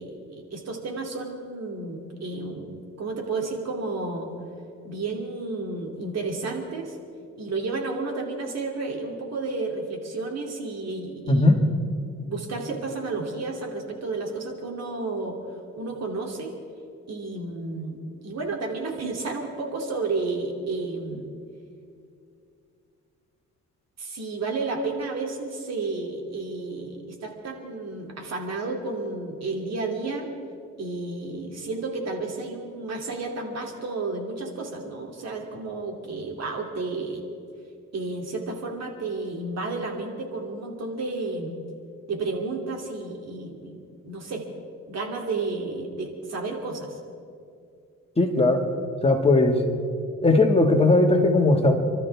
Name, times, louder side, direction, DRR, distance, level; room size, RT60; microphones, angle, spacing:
voice 1, 0.0-2.7 3.0-4.3 4.8-7.0 7.4-11.5 12.2-15.4 15.8-16.5 17.1-21.3 24.0-30.3 30.8-37.2 37.9-41.6 42.1-44.5 44.9-47.0, right 3 dB, 60° right, 1 dB, 3.0 m, -32 dB
voice 2, 11.3-11.6 48.2-48.6 49.0-49.6 50.2-51.7, left 2 dB, 20° left, 2 dB, 1.9 m, -18 dB
29.0 x 13.0 x 3.6 m, 2.4 s
cardioid pair, 90°, 30 cm